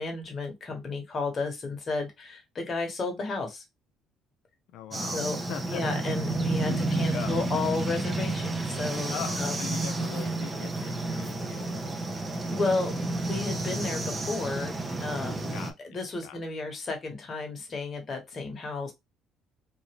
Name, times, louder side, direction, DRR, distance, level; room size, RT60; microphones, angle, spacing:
voice 1, 0.0-3.6 5.1-5.4 5.7-9.6 12.5-15.6 15.8-18.9, left 3 dB, 35° left, 1.1 m, -33 dB
voice 2, 4.7-5.2 5.5-5.8 6.7-7.4 9.1-12.3 15.5-16.4, left 9 dB, 75° left, 0.4 m, -41 dB
sound 1, 4.9-15.7, right 2 dB, 20° right, 0.5 m, -31 dB
2.9 x 2.6 x 2.9 m
cardioid pair, 130°, 0 cm